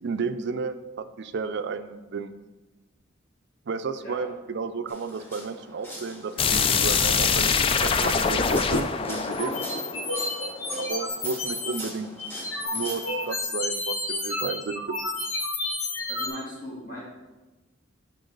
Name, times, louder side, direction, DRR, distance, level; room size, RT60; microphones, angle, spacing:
voice 1, 0.0-2.3 3.7-7.5 7.8-9.7 10.8-12.1 12.7-15.0, right 4 dB, 60° right, 11 dB, 0.4 m, -32 dB
sound 1, 4.9-13.3, equal, 10° left, 1.6 m, -43 dB
sound 2, 6.4-11.1, left 5 dB, 30° left, 0.3 m, -24 dB
Lo-fi sparkle, 9.3-11.8 12.2-16.3, left 2 dB, 85° left, 1.5 m, -31 dB
voice 2, 16.1-17.0, left 1 dB, 45° left, -10 dB, 2.1 m, -38 dB
10.5 x 3.8 x 3.9 m, 1.1 s
head